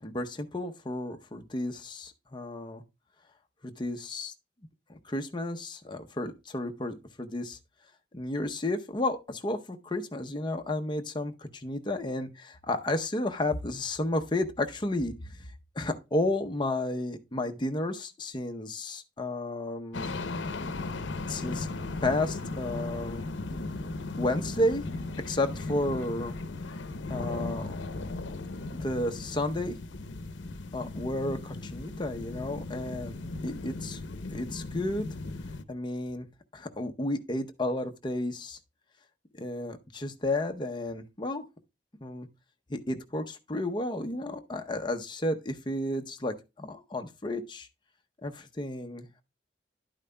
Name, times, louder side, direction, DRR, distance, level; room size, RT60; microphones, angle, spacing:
voice 1, 0.0-2.8 3.6-4.3 4.9-7.6 8.1-15.4 15.8-20.1 21.3-21.7 22.0-23.2 24.2-24.8 25.2-26.3 27.1-27.7 28.7-29.8 30.7-34.0 34.3-35.1 35.7-36.3 36.5-38.6 39.3-41.4 42.0-42.3 42.7-47.7 48.2-49.1, left 1 dB, 25° left, 0.7 m, -32 dB
sound 1, 19.9-35.6, left 2 dB, 80° left, 0.7 m, -37 dB
11.0 x 8.8 x 2.2 m
head